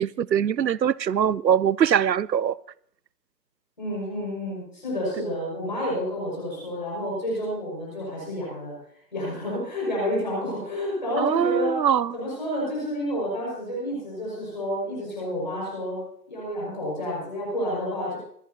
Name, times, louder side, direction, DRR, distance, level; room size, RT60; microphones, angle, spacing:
voice 1, 0.0-2.6 11.2-12.1, right 9 dB, 85° right, 0.6 m, -22 dB
voice 2, 3.8-8.7 9.1-11.8 12.1-18.2, equal, 25° left, 5.3 m, -30 dB
26.0 x 9.9 x 2.7 m
figure-of-eight pair, 170°, 50 cm